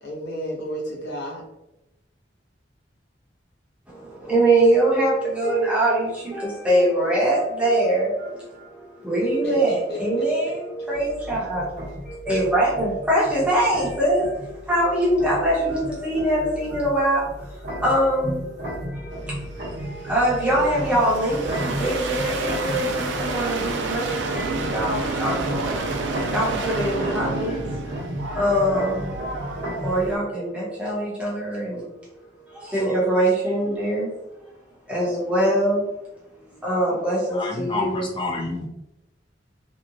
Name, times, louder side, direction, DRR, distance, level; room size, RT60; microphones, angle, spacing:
voice 1, 0.0-1.4 9.4-10.5, equal, 65° left, -2 dB, 0.8 m, -33 dB
voice 2, 3.9-11.6 12.0-31.9 32.5-34.1 34.9-35.8 36.5-38.1, right 1 dB, 5° right, -7 dB, 0.9 m, -23 dB
sound 1, 10.9-30.1, equal, 60° right, 0.8 m, -34 dB
sound 2, 19.3-30.2, right 3 dB, 80° right, 0.4 m, -30 dB
voice 3, 37.3-38.7, left 3 dB, 30° left, -2 dB, 0.6 m, -28 dB
2.8 x 2.2 x 2.6 m, 0.96 s
head